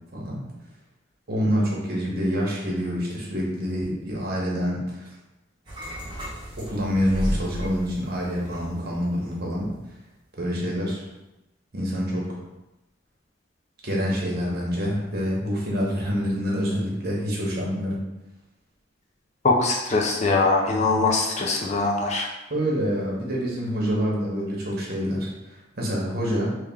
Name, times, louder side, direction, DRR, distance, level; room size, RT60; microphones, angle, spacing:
voice 1, 0.1-0.4 1.3-5.1 6.6-9.7 10.4-11.0 11.7-12.4 13.8-18.0 22.5-26.5, equal, 55° right, -3 dB, 1.0 m, -26 dB
sound 1, 5.6-9.1 9.4-9.7, equal, 25° right, 1.0 m, -33 dB
voice 2, 19.4-22.3, left 3 dB, 35° left, 0 dB, 0.5 m, -22 dB
3.2 x 3.0 x 3.5 m, 0.97 s
head